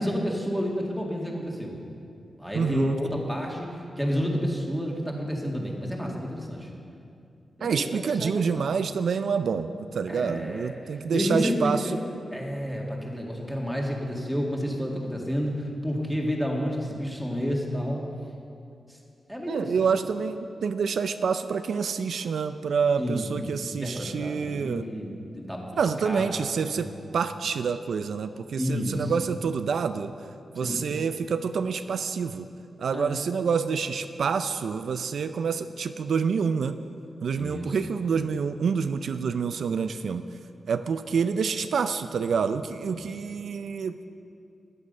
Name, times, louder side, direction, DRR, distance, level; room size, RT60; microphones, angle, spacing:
voice 1, 0.0-1.8 2.4-6.7 7.6-8.6 10.1-10.8 11.1-12.0 12.3-18.0 18.9-19.0 19.3-19.8 23.0-26.3 26.6-26.8 28.6-29.1 30.5-30.8 32.9-33.2 37.4-37.8 42.9-43.1, equal, ahead, -1 dB, 2.1 m, -30 dB
voice 2, 2.5-3.0 7.6-11.8 19.5-24.9 25.8-30.1 30.5-32.5 32.8-36.8 37.2-40.2 40.7-43.9, right 6 dB, 80° right, 10 dB, 0.4 m, -27 dB
13.5 x 9.9 x 5.4 m, 2.5 s
wide cardioid pair, 95°, 0 cm